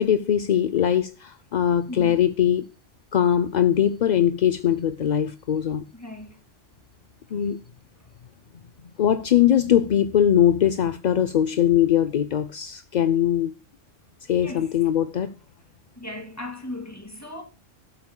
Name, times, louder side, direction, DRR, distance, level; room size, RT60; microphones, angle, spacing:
voice 1, 0.0-2.7 3.1-5.9 7.3-7.6 9.0-13.5 14.3-15.3, left 10 dB, 50° left, 0.5 m, -21 dB
voice 2, 1.9-2.2 5.9-6.4 14.4-14.7 16.0-17.4, left 2 dB, 15° left, 2.4 m, -37 dB
18.0 x 8.5 x 2.2 m
omnidirectional pair, 1.2 m